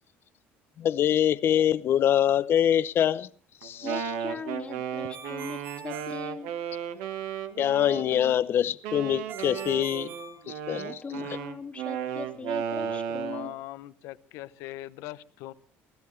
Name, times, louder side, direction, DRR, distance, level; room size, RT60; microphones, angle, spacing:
voice 1, 0.8-3.3 3.6-3.9 7.6-10.1 10.5-10.8, left 10 dB, 50° left, 0.7 m, -24 dB
Wind instrument woodwind instrument, 3.6-8.4 8.8-13.5, right 8 dB, 90° right, 1.5 m, -34 dB
voice 2, 3.8-6.5 10.8-13.6, left 5 dB, 25° left, 1.2 m, -40 dB
Ringtone, 5.1-7.0 9.3-11.2, right 5 dB, 50° right, 6.9 m, -44 dB
voice 3, 12.8-15.5, left 16 dB, 80° left, 0.8 m, -41 dB
21.5 x 16.0 x 3.2 m
cardioid pair, 110°, 5 cm